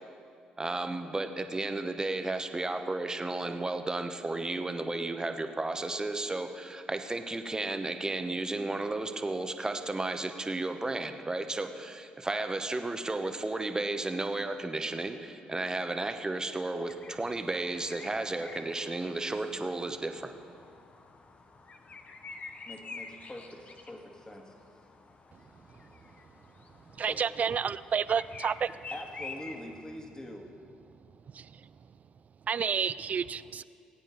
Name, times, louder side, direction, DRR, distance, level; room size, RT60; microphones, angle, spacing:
voice 1, 0.6-20.3, right 2 dB, 20° right, 7 dB, 1.0 m, -33 dB
sound 1, 16.9-30.0, left 4 dB, 40° left, 1.0 m, -48 dB
voice 2, 22.7-24.5 27.1-27.2 28.9-30.5, left 1 dB, 20° left, 2 dB, 2.0 m, -43 dB
voice 3, 27.0-28.7 31.3-31.5 32.5-33.6, right 7 dB, 45° right, 17 dB, 0.3 m, -30 dB
19.0 x 9.0 x 4.1 m, 2.4 s
hypercardioid pair, 55°, 3 cm